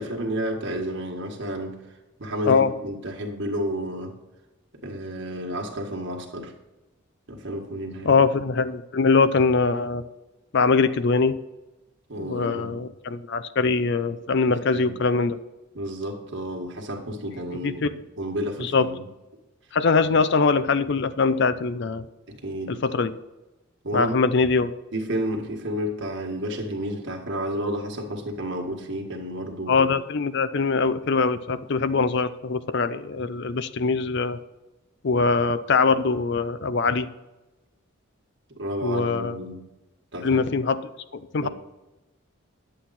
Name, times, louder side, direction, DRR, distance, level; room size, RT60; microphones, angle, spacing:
voice 1, 0.0-1.8 2.2-4.2 4.8-6.5 7.3-8.3 12.1-12.8 14.4-15.0 15.8-19.0 22.3-22.8 23.8-24.2 24.9-29.9 33.1-33.2 38.6-39.6 40.1-40.5 41.4-41.5, equal, 55° right, 2 dB, 1.7 m, -31 dB
voice 2, 8.0-10.0 10.5-11.4 12.2-15.4 17.6-17.9 18.6-18.9 19.7-22.1 22.7-23.2 23.9-24.8 29.7-34.4 35.0-37.1 38.8-39.4 40.2-40.8 41.1-41.5, left 4 dB, 55° left, 14 dB, 0.5 m, -22 dB
10.5 x 7.8 x 4.2 m, 1.1 s
head